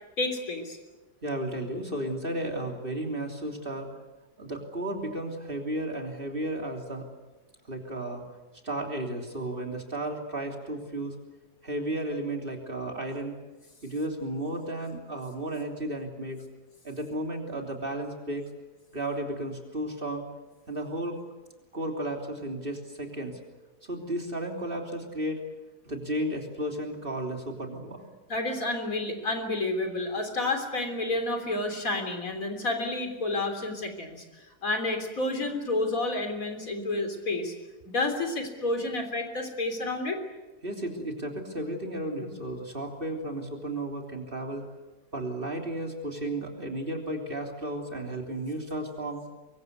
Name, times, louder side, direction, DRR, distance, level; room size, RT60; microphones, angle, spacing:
voice 1, 0.2-0.8 28.3-34.2 34.6-37.5 37.9-40.2, left 2 dB, 60° left, 5 dB, 3.9 m, -30 dB
voice 2, 1.2-3.9 4.4-7.1 7.7-8.2 8.6-11.2 11.6-13.3 13.8-16.4 16.8-18.4 18.9-20.2 20.7-21.2 21.7-23.4 23.8-25.4 25.9-28.1 40.6-44.6 45.1-49.2, right 1 dB, 35° right, 2 dB, 3.5 m, -33 dB
24.0 x 23.0 x 8.3 m, 1.1 s
omnidirectional pair, 1.6 m